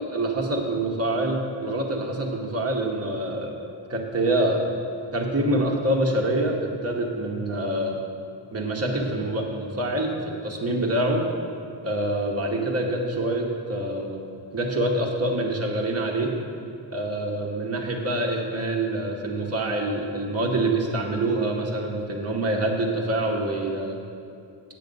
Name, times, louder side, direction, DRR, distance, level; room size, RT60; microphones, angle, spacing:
voice 1, 0.0-3.5 3.9-4.6 5.1-8.0 8.5-11.3 11.8-16.3 16.9-24.0, right 1 dB, 35° right, 0 dB, 1.0 m, -26 dB
8.5 x 7.5 x 5.3 m, 2.5 s
wide cardioid pair, 180°, 43 cm